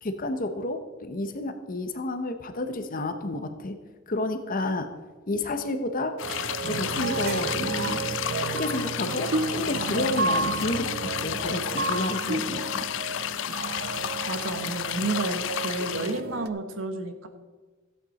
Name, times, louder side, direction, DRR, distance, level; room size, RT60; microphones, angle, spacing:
voice 1, 0.0-3.8 4.1-4.9 5.3-6.2 6.6-8.0 8.5-12.9, left 2 dB, 45° left, 8 dB, 0.9 m, -30 dB
sound 1, 6.2-16.2, left 11 dB, 65° left, 0.4 m, -32 dB
sound 2, 6.2-16.5, right 4 dB, 50° right, 0.5 m, -32 dB
voice 2, 14.3-17.3, right 2 dB, 80° right, 8 dB, 1.2 m, -31 dB
14.0 x 8.2 x 4.1 m, 1.3 s
head